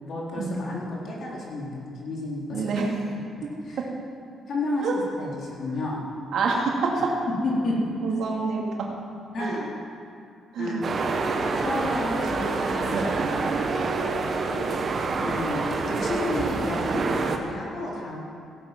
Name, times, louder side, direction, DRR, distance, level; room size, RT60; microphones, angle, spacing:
voice 1, 0.1-2.9 3.4-3.8 4.5-6.0 7.4-7.8 9.3-9.7 10.6-11.0 11.6-13.4 15.2-18.2, left 2 dB, 55° left, -4 dB, 3.7 m, -31 dB
voice 2, 2.5-2.8 4.8-4.9 6.3-7.1 8.0-8.6 9.4-9.6 10.5-10.8 12.9-13.1, right 5 dB, 70° right, -1 dB, 2.4 m, -27 dB
sound 1, 10.8-17.4, right 4 dB, 45° right, 1.3 m, -27 dB
16.0 x 8.9 x 6.1 m, 2.4 s
cardioid pair, 90°, 0 cm